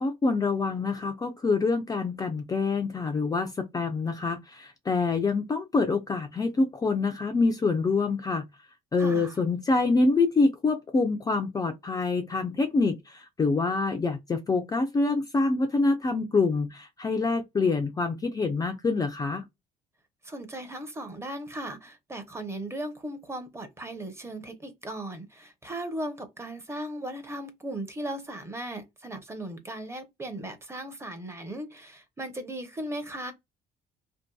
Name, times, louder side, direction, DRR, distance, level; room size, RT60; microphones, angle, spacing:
voice 1, 0.0-8.5 8.9-19.4, left 3 dB, 20° left, 0.4 m, -26 dB
voice 2, 9.0-9.3 20.2-33.3, right 1 dB, 15° right, 0.7 m, -37 dB
2.6 x 2.2 x 2.2 m
cardioid pair, 110°, 17 cm